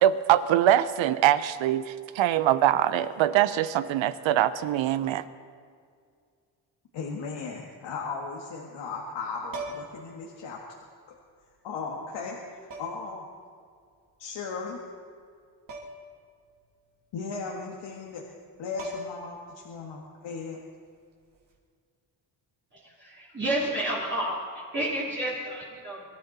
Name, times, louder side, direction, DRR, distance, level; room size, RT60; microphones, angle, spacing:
voice 1, 0.0-5.2, right 12 dB, 85° right, 14 dB, 0.9 m, -23 dB
voice 2, 6.9-10.8 11.1-11.2 11.6-13.3 14.2-14.8 17.1-18.2 18.6-20.6, left 4 dB, 70° left, -2 dB, 2.0 m, -36 dB
sound 1, 9.5-10.1 11.4-11.5 12.7-13.1 15.7-16.1 16.4-16.5 18.4-18.5 18.8-19.4 21.3-21.5, right 2 dB, 45° right, 3.1 m, -39 dB
voice 3, 22.7-26.0, right 1 dB, 25° right, -7 dB, 3.3 m, -31 dB
24.5 x 13.0 x 4.2 m, 2.1 s
cardioid pair, 145°, 45 cm